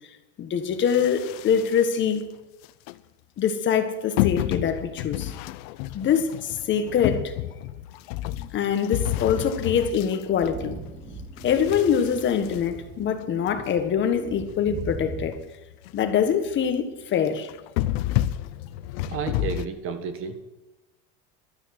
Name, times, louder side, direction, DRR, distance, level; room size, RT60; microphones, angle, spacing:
voice 1, 0.4-2.2 3.4-5.3 5.9-7.3 8.5-10.8 11.4-15.3 15.9-17.5, left 7 dB, 40° left, 8 dB, 1.6 m, -24 dB
sound 1, 0.9-2.1 2.6-2.9 4.2-10.9 11.4-13.5 14.0-14.1 14.3-14.4 14.8-14.9 15.2-15.4 15.7-16.1 16.5-16.7 17.4-19.6, left 14 dB, 75° left, 0.8 m, -30 dB
sound 2, 7.4-8.0 8.9-15.3, right 1 dB, 20° right, 3.8 m, -40 dB
voice 2, 19.1-20.4, right 6 dB, 45° right, 9 dB, 1.7 m, -31 dB
12.5 x 9.6 x 7.9 m, 1.0 s
supercardioid pair, 130°, 30 cm